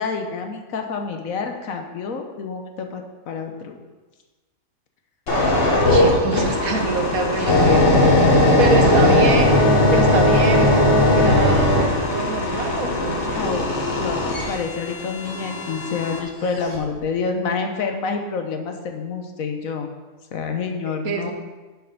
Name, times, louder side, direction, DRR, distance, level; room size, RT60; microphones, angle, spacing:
voice 1, 0.0-3.8 6.3-6.5 8.5-9.3 13.2-19.9 20.3-21.3, left 5 dB, 70° left, 4 dB, 1.2 m, -28 dB
sound 1, 5.3-16.2 16.8-17.0, left 1 dB, 40° left, 1.4 m, -18 dB
voice 2, 5.8-7.9 8.6-13.3 20.9-21.3, right 4 dB, 75° right, 4 dB, 1.4 m, -26 dB
6.7 x 6.4 x 5.3 m, 1.2 s
omnidirectional pair, 1.6 m